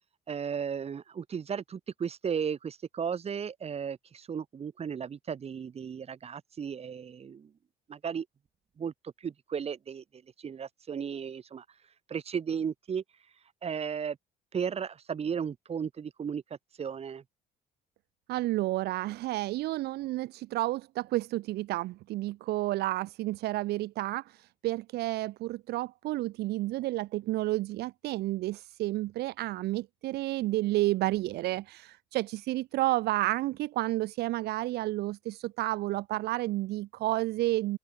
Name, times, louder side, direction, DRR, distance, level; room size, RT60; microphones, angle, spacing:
voice 1, 0.3-7.5 7.9-8.3 8.8-11.6 12.1-13.0 13.6-14.2 14.5-16.4 16.8-17.2, right 7 dB, 35° right, 2.0 m, -35 dB
voice 2, 18.3-37.8, right 17 dB, 75° right, 0.6 m, -31 dB
open air
cardioid pair, 110°, 17 cm